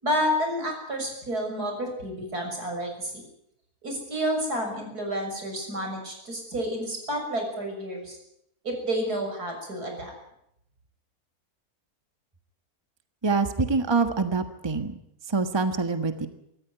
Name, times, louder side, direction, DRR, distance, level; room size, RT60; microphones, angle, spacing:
voice 1, 0.0-3.2 3.8-8.2 8.6-10.1, equal, 90° right, 2 dB, 7.0 m, -30 dB
voice 2, 13.2-15.0 15.3-16.3, right 4 dB, 20° right, 8 dB, 1.4 m, -25 dB
25.0 x 14.0 x 9.4 m, 0.78 s
omnidirectional pair, 1.6 m